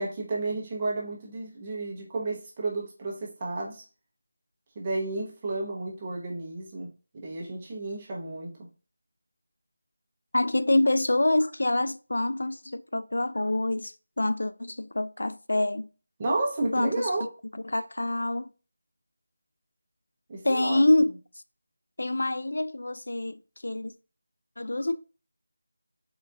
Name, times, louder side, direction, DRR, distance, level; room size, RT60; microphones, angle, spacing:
voice 1, 0.0-3.8 4.8-6.9 7.1-8.5 16.2-17.3 20.3-20.8, right 2 dB, 20° right, 0.9 m, -32 dB
voice 2, 10.3-15.9 16.7-17.1 17.5-18.5 20.4-21.1 22.0-23.9 24.6-24.9, left 1 dB, 75° left, 0.3 m, -26 dB
4.0 x 3.8 x 2.3 m
figure-of-eight pair, 170°, 0 cm